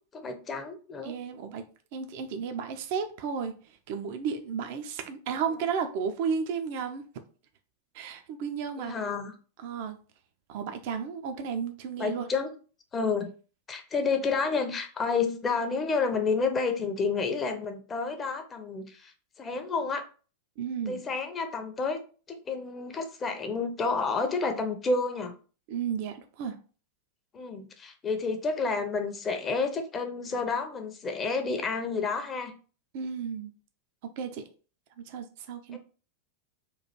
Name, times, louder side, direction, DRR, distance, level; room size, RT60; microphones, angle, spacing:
voice 1, 0.1-1.1 8.8-9.3 12.0-12.5 12.9-13.3 13.7-19.1 19.4-20.0 20.9-22.0 22.3-25.3 27.3-32.6 35.7-35.8, left 4 dB, 20° left, 0.6 m, -30 dB
voice 2, 1.0-1.6 1.9-7.0 7.9-9.0 9.6-10.0 10.5-12.3 20.6-21.0 25.7-26.6 30.3-30.4 32.9-33.5 34.0-34.5 35.0-35.8, right 6 dB, 50° right, 0.5 m, -33 dB
3.1 x 2.4 x 4.2 m
figure-of-eight pair, 90°, 0 cm